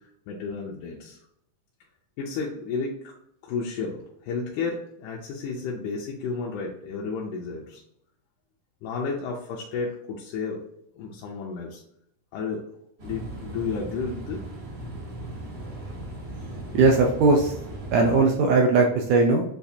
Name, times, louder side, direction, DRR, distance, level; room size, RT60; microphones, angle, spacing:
voice 1, 0.3-1.2 2.2-3.1 3.4-7.8 8.8-10.6 11.0-11.8 12.3-12.7 13.0-14.4, left 4 dB, 80° left, -3 dB, 2.1 m, -32 dB
sound 1, 13.0-18.2, right 1 dB, 65° right, 1.0 m, -37 dB
voice 2, 16.7-17.5 17.9-19.4, right 3 dB, 80° right, 1 dB, 1.6 m, -19 dB
6.8 x 2.5 x 2.7 m, 0.74 s
omnidirectional pair, 3.6 m